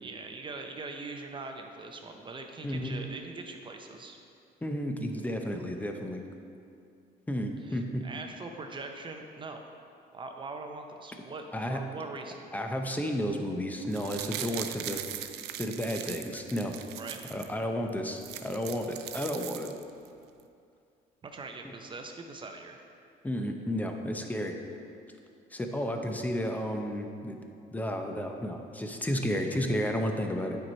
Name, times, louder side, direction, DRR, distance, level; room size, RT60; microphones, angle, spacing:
voice 1, 0.0-4.2 7.6-9.6 10.1-12.5 17.0-17.2 21.2-22.8, right 3 dB, 30° right, 4 dB, 0.6 m, -42 dB
voice 2, 2.6-3.0 4.6-6.2 7.3-8.0 11.5-11.8 12.5-15.0 15.6-16.7 17.3-19.7 21.6-21.8 23.2-24.6 25.5-27.4 27.7-30.6, equal, 10° left, 4 dB, 0.7 m, -32 dB
sound 1, 13.8-17.5 17.9-18.0 18.2-20.1 20.4-20.5, right 11 dB, 85° right, 0.4 m, -40 dB
9.1 x 4.6 x 4.3 m, 2.4 s
cardioid pair, 110°, 17 cm